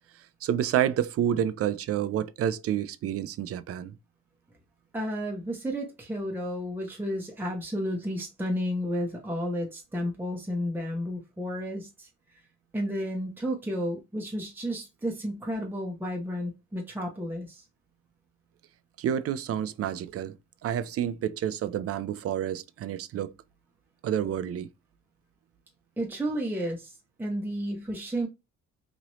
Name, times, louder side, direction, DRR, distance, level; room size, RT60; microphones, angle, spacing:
voice 1, 0.4-3.9 19.0-20.4 20.6-23.3 24.0-24.7, right 10 dB, 50° right, 0.4 m, -29 dB
voice 2, 4.9-12.1 12.7-17.6 26.0-26.9 27.2-28.3, equal, 5° right, 0.9 m, -32 dB
2.9 x 2.6 x 3.0 m
cardioid pair, 90°, 30 cm